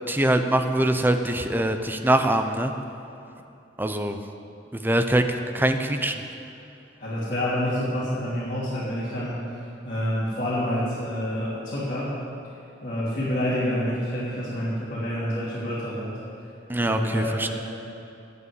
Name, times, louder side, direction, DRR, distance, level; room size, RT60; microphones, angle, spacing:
voice 1, 0.1-2.7 3.8-4.2 4.8-6.1 16.7-17.5, right 1 dB, 10° right, 6 dB, 0.7 m, -23 dB
voice 2, 7.0-9.4 9.8-12.1 12.8-16.1 16.8-17.5, equal, 40° left, -11 dB, 3.0 m, -28 dB
9.6 x 8.3 x 9.6 m, 2.8 s
head